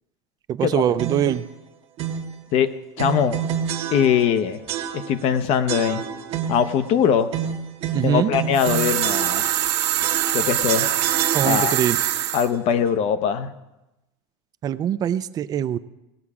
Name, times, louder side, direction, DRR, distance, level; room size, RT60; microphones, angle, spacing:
voice 1, 0.5-1.4 7.9-8.3 11.3-12.0 14.6-15.8, right 10 dB, 25° right, 15 dB, 0.4 m, -22 dB
sound 1, 1.0-1.4 2.0-2.3 3.0-4.4 4.7-5.3 5.7-6.7 7.3-9.7 10.0-11.9, right 8 dB, 40° right, 1.0 m, -29 dB
voice 2, 2.5-3.4 3.9-4.6 4.9-6.0 6.5-7.3 8.0-9.6 10.3-11.0 11.4-11.7 12.3-13.5, left 8 dB, 45° left, 11 dB, 0.8 m, -21 dB
sound 2, 8.5-12.5, right 13 dB, 85° right, 1.2 m, -23 dB
18.5 x 7.1 x 4.9 m, 0.96 s
supercardioid pair, 150°, 14 cm